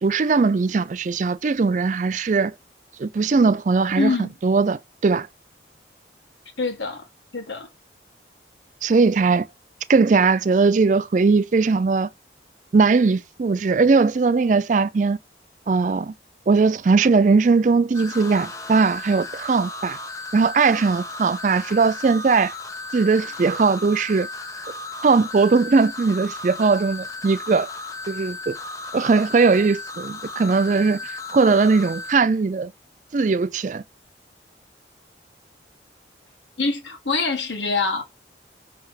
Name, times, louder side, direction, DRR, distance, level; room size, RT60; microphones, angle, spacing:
voice 1, 0.0-2.5 3.0-4.1 4.4-5.3 8.8-9.5 9.9-12.1 12.7-15.2 15.7-16.1 16.5-20.0 20.3-22.5 22.9-24.3 25.0-27.7 28.1-28.6 28.9-32.7 33.1-33.8, right 4 dB, 45° right, 0.4 m, -19 dB
voice 2, 4.0-4.3 6.6-7.1 7.3-7.7 36.6-38.0, left 4 dB, 85° left, 1.5 m, -24 dB
sound 1, 17.9-32.2, left 3 dB, 20° left, 0.7 m, -35 dB
5.7 x 3.3 x 5.6 m
head